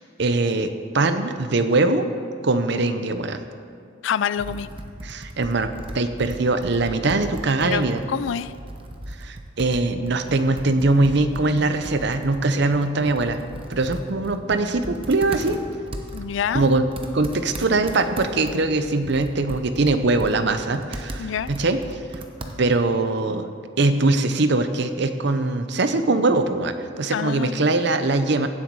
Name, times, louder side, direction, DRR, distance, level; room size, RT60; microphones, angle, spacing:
voice 1, 0.2-2.1 2.4-3.4 5.0-8.0 9.2-13.4 13.7-15.6 16.5-16.9 17.1-21.8 22.6-23.5 23.8-28.5, right 2 dB, 60° right, 9 dB, 0.7 m, -22 dB
voice 2, 4.0-4.7 7.6-8.5 16.1-16.6 21.2-21.5 27.1-27.8, left 8 dB, 70° left, 16 dB, 0.4 m, -27 dB
Computer keyboard, 4.4-22.9, right 1 dB, 30° right, 0.9 m, -38 dB
16.5 x 7.9 x 4.7 m, 2.3 s
head